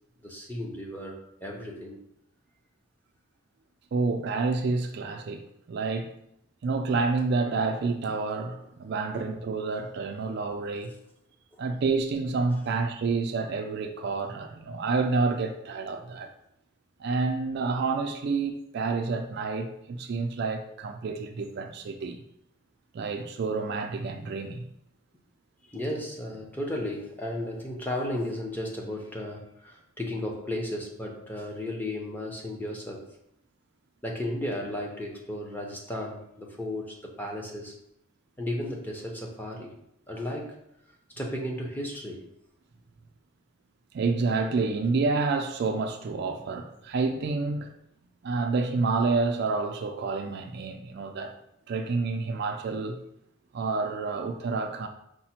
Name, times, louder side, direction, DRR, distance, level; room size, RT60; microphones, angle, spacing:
voice 1, 0.2-2.0 9.1-9.3 25.6-33.0 34.0-37.7 38.4-39.7 40.1-40.6 41.2-42.2, left 1 dB, 10° left, 0.6 m, -34 dB
voice 2, 3.9-6.1 6.6-10.9 11.6-16.3 17.0-22.2 22.9-24.7 43.9-47.7 48.2-51.3 51.7-53.0 53.5-54.9, right 4 dB, 50° right, 0.3 m, -29 dB
4.9 x 2.1 x 4.2 m
head